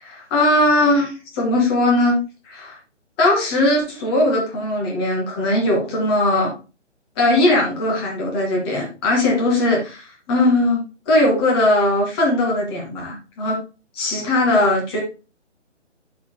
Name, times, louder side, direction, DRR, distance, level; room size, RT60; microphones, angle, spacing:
voice 1, 0.0-2.2 2.5-2.7 3.2-6.5 7.2-13.6 14.0-15.0, left 1 dB, 20° left, -2 dB, 2.4 m, -19 dB
11.0 x 6.0 x 2.3 m, 0.31 s
figure-of-eight pair, 145°, 37 cm